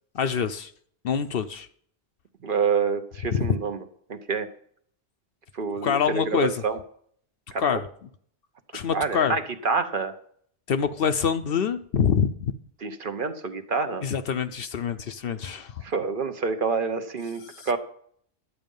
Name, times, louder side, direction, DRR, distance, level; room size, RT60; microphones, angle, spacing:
voice 1, 0.1-0.7 1.0-1.7 3.3-3.5 5.8-6.6 7.6-7.8 8.7-9.4 10.7-12.5 14.0-15.8 17.5-17.7, left 7 dB, 60° left, 10 dB, 0.8 m, -25 dB
voice 2, 2.4-3.8 4.1-4.5 5.5-6.8 7.5-7.8 8.9-10.1 12.8-14.1 15.8-17.8, right 5 dB, 50° right, 8 dB, 0.9 m, -27 dB
11.5 x 8.4 x 5.3 m, 0.62 s
omnidirectional pair, 1.2 m